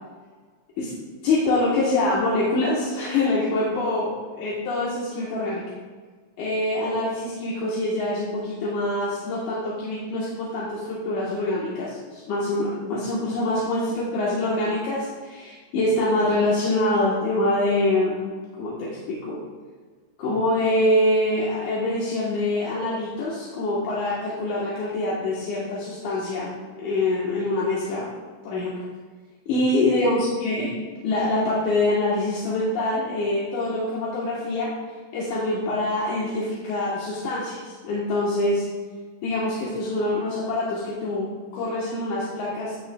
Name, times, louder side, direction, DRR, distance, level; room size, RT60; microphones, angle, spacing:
voice 1, 1.2-5.6 6.4-18.1 18.5-19.4 20.2-26.5 26.8-28.1 28.4-28.7 29.5-30.8 31.0-34.7 35.1-38.6 39.2-42.9, left 2 dB, 80° left, -6 dB, 2.8 m, -25 dB
15.0 x 6.2 x 2.3 m, 1.5 s
omnidirectional pair, 3.5 m